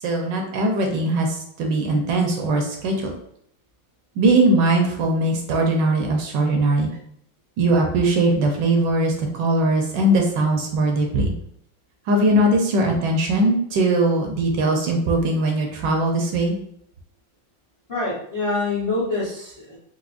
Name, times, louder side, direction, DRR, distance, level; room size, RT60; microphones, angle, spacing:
voice 1, 0.0-3.1 4.2-6.9 7.6-11.3 12.1-16.6, right 2 dB, 75° right, 2 dB, 1.2 m, -20 dB
voice 2, 17.9-19.8, left 3 dB, 45° left, -6 dB, 0.4 m, -25 dB
4.6 x 2.1 x 2.4 m, 0.69 s
omnidirectional pair, 2.1 m